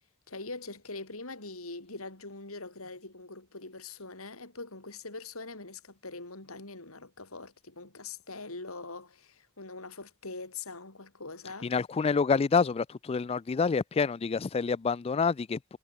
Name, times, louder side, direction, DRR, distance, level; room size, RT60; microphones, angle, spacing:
voice 1, 0.3-11.7, left 3 dB, 90° left, 5.0 m, -43 dB
voice 2, 11.6-15.8, left 5 dB, 30° left, 0.3 m, -27 dB
head